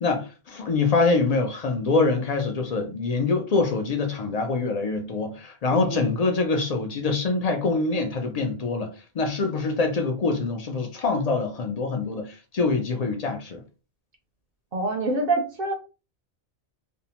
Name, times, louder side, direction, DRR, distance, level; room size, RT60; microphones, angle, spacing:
voice 1, 0.0-8.9 9.2-13.6, left 3 dB, 55° left, 0.4 m, -25 dB
voice 2, 5.7-6.0 14.7-15.7, right 2 dB, 60° right, 0.7 m, -26 dB
2.6 x 2.1 x 2.8 m
omnidirectional pair, 1.1 m